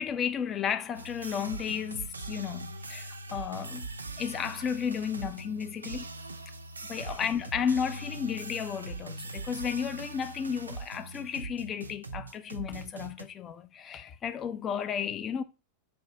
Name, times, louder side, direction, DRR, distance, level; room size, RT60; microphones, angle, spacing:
voice 1, 0.0-3.9 4.2-6.1 6.9-15.4, left 7 dB, 25° left, 0.3 m, -33 dB
sound 1, 0.9-13.2, right 2 dB, 75° right, 0.5 m, -41 dB
4.3 x 2.5 x 4.3 m
figure-of-eight pair, 90°, 0 cm